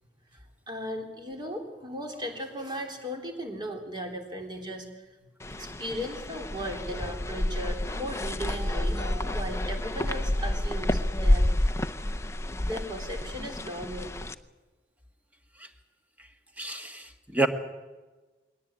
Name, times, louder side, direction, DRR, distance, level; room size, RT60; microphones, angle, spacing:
voice 1, 0.3-5.2 5.5-11.5 12.7-14.1, equal, 25° right, 3 dB, 3.6 m, -37 dB
sound 1, 5.4-14.3, left 1 dB, 15° left, 0.7 m, -29 dB
voice 2, 16.6-17.5, right 2 dB, 10° right, 6 dB, 1.5 m, -28 dB
21.5 x 18.0 x 8.9 m, 1.2 s
head